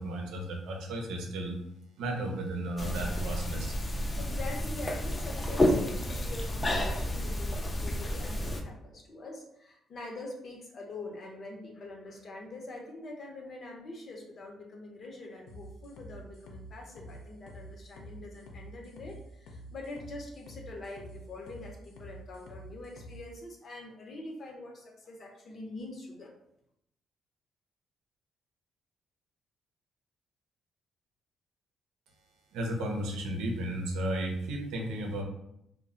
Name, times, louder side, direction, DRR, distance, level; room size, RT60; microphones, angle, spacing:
voice 1, 0.0-1.6 2.0-3.7 32.5-35.2, right 1 dB, 90° right, 1 dB, 0.6 m, -34 dB
sound 1, 2.8-8.6, left 1 dB, 25° left, 0.4 m, -30 dB
voice 2, 4.2-26.3, left 2 dB, 55° left, 0 dB, 0.7 m, -44 dB
sound 2, 15.5-23.2, equal, 85° left, 0.5 m, -48 dB
2.2 x 2.0 x 3.7 m, 0.78 s
cardioid pair, 90°, 0 cm